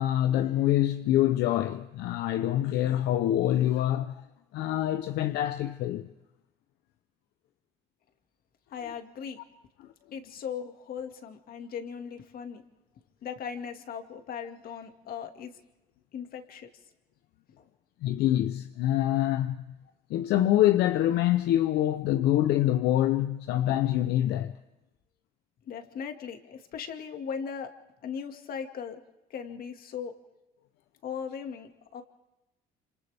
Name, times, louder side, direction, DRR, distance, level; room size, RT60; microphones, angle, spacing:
voice 1, 0.0-4.1 4.5-6.1 9.8-9.9 18.0-19.6 20.1-24.5, left 13 dB, 80° left, 0.8 m, -25 dB
voice 2, 8.7-9.4 10.1-12.6 13.2-15.5 16.1-16.7 17.6-17.7 25.7-27.7 28.0-29.0 29.3-30.2 31.0-32.0, left 7 dB, 60° left, 2.1 m, -38 dB
28.0 x 27.0 x 3.5 m
cardioid pair, 110°, 17 cm